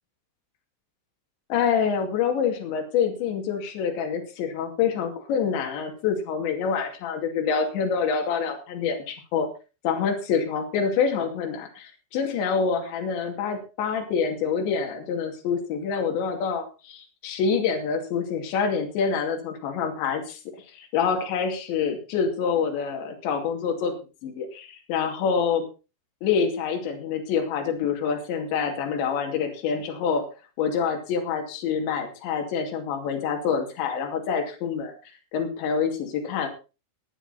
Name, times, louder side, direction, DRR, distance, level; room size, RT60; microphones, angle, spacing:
voice 1, 1.5-9.5 9.8-20.4 20.7-23.9 24.2-25.7 26.2-30.3 30.6-34.9 35.3-36.5, left 6 dB, 65° left, 3 dB, 4.7 m, -26 dB
19.5 x 9.1 x 4.2 m, 0.32 s
omnidirectional pair, 5.7 m